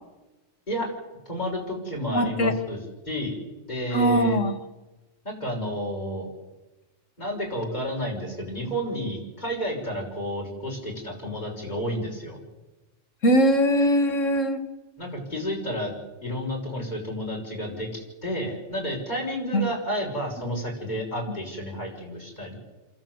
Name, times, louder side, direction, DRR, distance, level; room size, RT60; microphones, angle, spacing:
voice 1, 1.3-2.8 3.1-3.4 3.7-4.4 5.2-6.3 7.2-12.4 15.0-15.9 16.2-22.5, equal, 35° left, -2 dB, 6.3 m, -31 dB
voice 2, 2.1-2.5 3.9-4.5 13.2-14.6 19.5-19.6, equal, 80° left, 8 dB, 2.2 m, -21 dB
29.0 x 13.0 x 8.1 m, 1.1 s
omnidirectional pair, 1.3 m